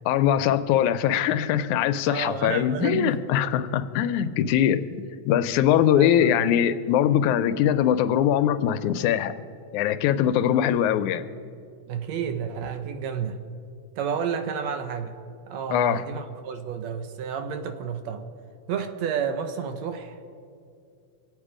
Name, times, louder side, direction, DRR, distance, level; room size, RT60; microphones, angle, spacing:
voice 1, 0.1-9.3 9.7-11.2 15.7-16.0, left 10 dB, 85° left, 2.0 m, -22 dB
voice 2, 2.0-3.1 6.0-6.5 11.9-13.4 14.0-15.1 15.5-18.3 18.7-20.2, right 7 dB, 75° right, 1.9 m, -30 dB
24.5 x 9.0 x 4.9 m
omnidirectional pair, 3.4 m